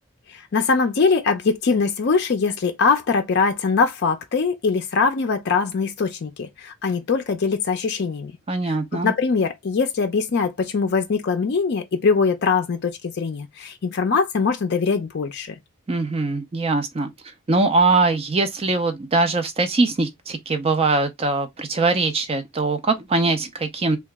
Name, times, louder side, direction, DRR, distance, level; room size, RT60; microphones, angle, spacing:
voice 1, 0.3-8.3 8.7-15.5, left 4 dB, 50° left, 0.4 m, -22 dB
voice 2, 8.5-9.1 15.9-17.1 17.5-24.0, right 3 dB, 30° right, 0.4 m, -22 dB
2.8 x 2.3 x 3.4 m
head